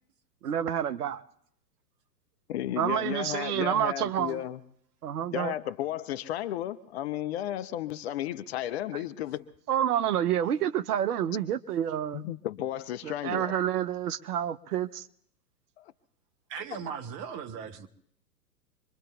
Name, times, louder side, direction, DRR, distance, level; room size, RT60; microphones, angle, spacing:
voice 1, 0.4-1.2 2.8-4.4 5.0-5.5 8.9-9.0 9.7-12.2 13.0-15.1, right 10 dB, 65° right, 0.8 m, -28 dB
voice 2, 2.5-4.6 5.3-9.4 12.1-13.5 15.8-15.9, left 12 dB, 40° left, 0.6 m, -33 dB
voice 3, 16.5-17.9, right 7 dB, 30° right, 0.9 m, -38 dB
26.5 x 22.5 x 2.3 m
figure-of-eight pair, 115°, 50 cm